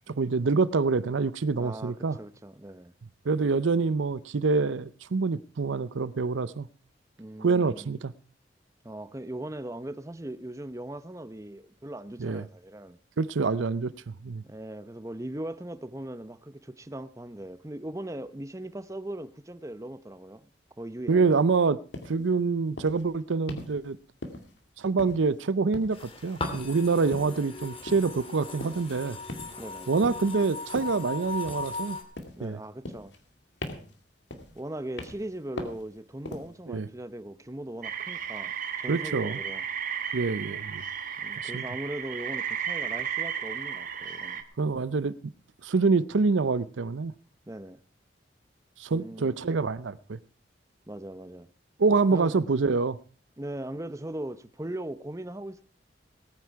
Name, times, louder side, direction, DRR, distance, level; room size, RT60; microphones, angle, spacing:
voice 1, 0.1-2.2 3.3-6.7 7.4-8.1 12.2-12.4 13.2-13.9 14.2-14.4 21.1-21.8 22.1-24.0 24.8-29.2 29.9-32.0 32.4-32.6 36.7-36.9 38.9-39.4 40.1-40.8 41.4-41.6 44.6-45.2 45.6-47.1 48.8-50.2 51.8-53.0, right 4 dB, 80° right, 0.6 m, -26 dB
voice 2, 1.6-2.9 7.2-8.0 8.8-13.0 14.4-20.5 20.8-21.4 29.6-29.9 32.4-33.1 34.5-39.6 40.5-40.6 41.2-44.4 47.5-47.8 48.9-49.4 50.9-51.5 52.1-52.4 53.4-55.6, right 1 dB, 15° right, 0.7 m, -39 dB
sound 1, 21.9-22.2 22.8-23.0 23.5-23.8 24.2-24.6 25.0-25.4 25.7-26.1 26.4-26.7 27.1-27.4 27.9-28.1 28.6-28.9 29.3-29.7 30.0-30.3 30.8-31.1 31.5-31.9 32.2-32.5 32.9-33.3 33.6-34.0 34.3-34.6 35.0-35.3 35.6-35.9 36.3-36.6, left 1 dB, 65° left, 2.3 m, -40 dB
sound 2, 25.9-32.0, left 3 dB, 30° left, 2.3 m, -38 dB
sound 3, 37.8-44.4, right 8 dB, 45° right, 1.3 m, -34 dB
19.0 x 9.5 x 4.6 m
head